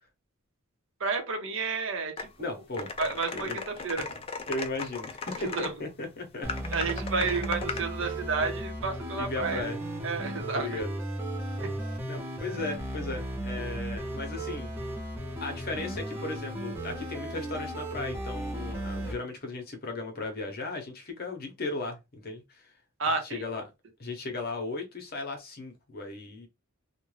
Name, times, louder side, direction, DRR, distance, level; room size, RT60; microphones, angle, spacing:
voice 1, 1.0-2.6 3.0-4.1 5.5-5.7 6.7-9.7 10.0-10.8 11.6-11.7 23.0-23.4, right 4 dB, 65° right, 0.7 m, -31 dB
sound 1, 2.2-2.3 2.7-5.7 6.5-7.9, left 4 dB, 25° left, 0.3 m, -37 dB
voice 2, 2.4-2.9 3.3-3.6 4.5-6.5 9.1-9.8 10.5-10.9 12.1-14.7 15.4-22.7 23.3-23.6 24.0-26.5, left 3 dB, 45° left, 0.8 m, -36 dB
sound 2, 6.4-19.1, right 1 dB, 10° right, 0.7 m, -35 dB
2.4 x 2.2 x 3.1 m
head